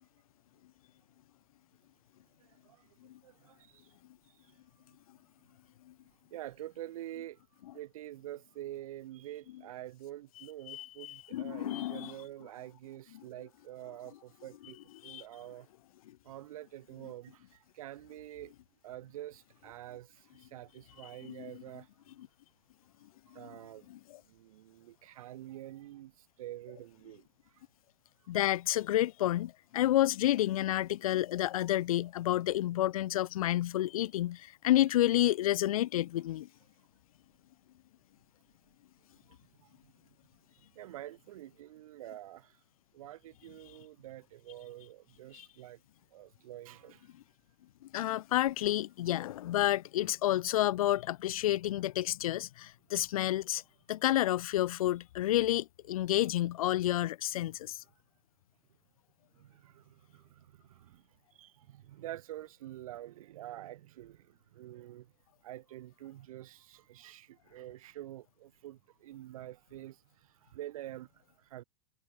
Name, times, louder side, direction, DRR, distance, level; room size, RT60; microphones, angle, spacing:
voice 1, 2.4-2.8 3.2-3.9 6.3-7.4 7.7-14.8 15.0-15.7 16.2-18.5 18.8-21.9 23.3-23.9 24.3-27.3 27.5-27.6 39.3-39.7 40.8-42.6 42.9-45.8 46.1-47.1 59.3-61.0 61.3-65.1 65.4-71.1 71.4-71.6, right 14 dB, 75° right, 2.0 m, -47 dB
voice 2, 10.4-12.1 13.1-13.2 15.0-15.2 21.3-21.6 23.4-23.5 23.9-24.2 28.3-36.5 45.3-45.5 47.9-53.6 53.9-57.8, left 14 dB, 75° left, 1.4 m, -30 dB
supercardioid pair, 165°, 18 cm